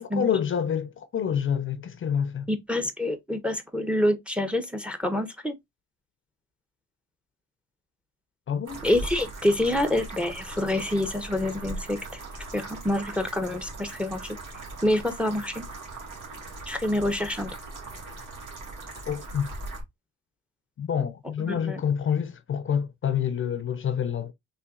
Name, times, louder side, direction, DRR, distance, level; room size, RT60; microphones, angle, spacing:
voice 1, 0.0-2.5 8.5-8.8 19.1-19.5 20.8-24.3, left 8 dB, 45° left, 0.5 m, -27 dB
voice 2, 2.5-5.5 8.8-12.2 12.5-14.4 14.8-15.6 16.7-17.5 21.5-21.8, left 1 dB, 5° right, 0.6 m, -27 dB
sound 1, 8.7-19.8, right 2 dB, 80° right, 1.8 m, -39 dB
4.0 x 2.7 x 2.4 m
cardioid pair, 90°, 30 cm